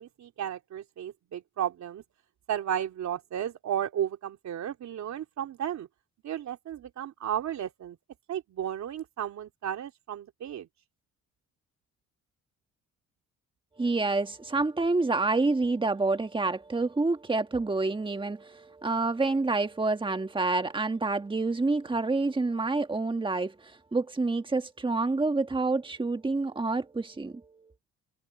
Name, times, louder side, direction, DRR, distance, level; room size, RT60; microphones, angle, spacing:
voice 1, 0.0-2.0 2.5-5.9 6.2-8.0 8.3-10.7, right 10 dB, 65° right, 3.1 m, -33 dB
voice 2, 13.8-27.7, right 3 dB, 15° right, 1.7 m, -28 dB
cardioid pair, 90°, 30 cm